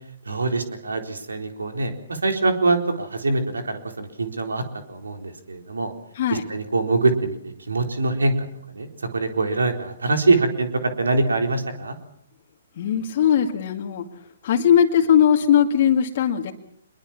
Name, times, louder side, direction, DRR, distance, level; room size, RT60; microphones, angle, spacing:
voice 1, 0.3-5.9 6.3-12.0, right 3 dB, 85° right, 6 dB, 4.0 m, -24 dB
voice 2, 12.8-14.1 14.4-16.5, left 9 dB, 50° left, 2 dB, 2.2 m, -19 dB
25.0 x 22.0 x 7.3 m, 0.71 s
hypercardioid pair, 130°, 0 cm